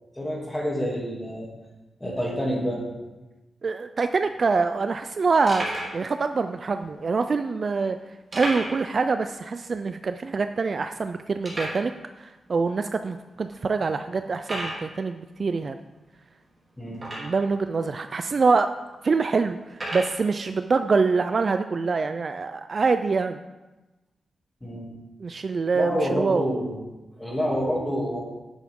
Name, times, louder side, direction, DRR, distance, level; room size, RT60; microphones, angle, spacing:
voice 1, 0.1-1.5 2.0-2.8 16.8-17.0 24.6-24.9 25.7-26.8 27.2-28.2, equal, 10° left, -3 dB, 2.5 m, -28 dB
voice 2, 3.6-5.7 5.9-8.0 8.3-11.9 12.2-15.8 17.2-18.7 19.0-19.6 19.9-23.4 25.2-26.5, right 4 dB, 45° right, 9 dB, 0.3 m, -25 dB
sound 1, 4.0-4.1 4.3-4.4 5.0-5.1 5.5-6.0 6.7-6.8 8.3-8.9 9.2-9.3 9.7-9.8 10.4-10.5 11.4-11.9 12.7-12.8 13.3-13.5 14.4-14.9 16.9-17.5 18.3-18.4 19.7-20.2, right 1 dB, 25° right, 3.0 m, -32 dB
10.0 x 8.3 x 3.6 m, 1.1 s
wide cardioid pair, 135°, 0 cm